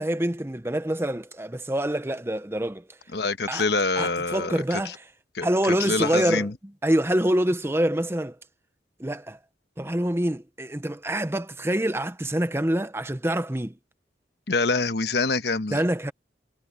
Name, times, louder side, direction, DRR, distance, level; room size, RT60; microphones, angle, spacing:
voice 1, 0.0-2.8 3.5-3.6 4.0-5.0 5.4-6.5 6.8-8.4 9.0-9.4 9.8-13.7 15.7-16.1, right 1 dB, 15° right, 0.8 m, -26 dB
voice 2, 3.1-4.5 4.8-4.9 5.3-5.5 5.8-6.5 14.5-15.8, left 3 dB, 65° left, 1.2 m, -25 dB
head